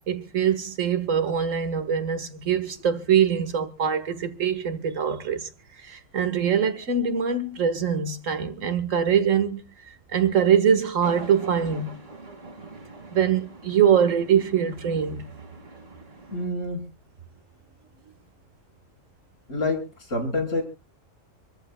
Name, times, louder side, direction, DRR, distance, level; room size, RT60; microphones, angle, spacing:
voice 1, 0.1-12.0 13.1-15.3, right 7 dB, 85° right, 1.9 m, -23 dB
sound 1, 11.0-16.5, right 3 dB, 50° right, 2.4 m, -43 dB
voice 2, 16.3-16.9 19.5-20.6, left 2 dB, 85° left, 4.8 m, -27 dB
26.5 x 14.0 x 2.2 m
omnidirectional pair, 1.3 m